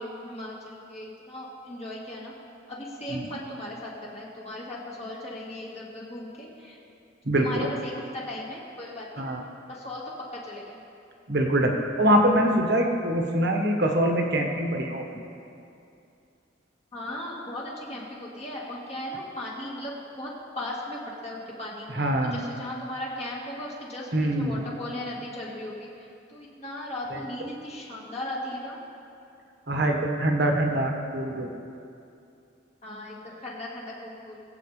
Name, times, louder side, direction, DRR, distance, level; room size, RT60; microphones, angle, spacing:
voice 1, 0.0-2.3 2.7-6.8 7.4-9.2 9.7-10.8 16.9-25.9 26.3-28.8 32.8-34.4, left 1 dB, 30° left, -5 dB, 1.8 m, -37 dB
voice 2, 11.3-15.0 21.9-22.4 24.1-24.6 27.1-27.2 29.7-31.5, right 1 dB, 55° right, 2 dB, 1.4 m, -24 dB
21.5 x 8.1 x 3.3 m, 2.6 s
head